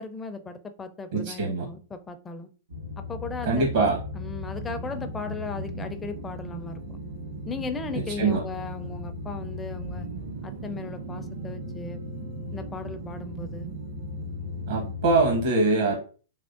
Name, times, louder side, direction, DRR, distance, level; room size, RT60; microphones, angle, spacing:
voice 1, 0.0-2.5 3.0-3.9 4.1-7.0 7.5-10.1 10.4-12.0 12.5-13.7, left 4 dB, 15° left, 8 dB, 0.4 m, -37 dB
voice 2, 1.1-1.7 3.4-4.0 7.9-8.4 14.7-16.0, right 3 dB, 70° right, 0 dB, 0.9 m, -23 dB
sound 1, 2.7-15.5, left 3 dB, 90° right, 1.7 m, -38 dB
sound 2, 4.6-14.9, right 9 dB, 50° right, 0.4 m, -42 dB
3.5 x 3.1 x 2.5 m, 0.38 s
hypercardioid pair, 115°, 0 cm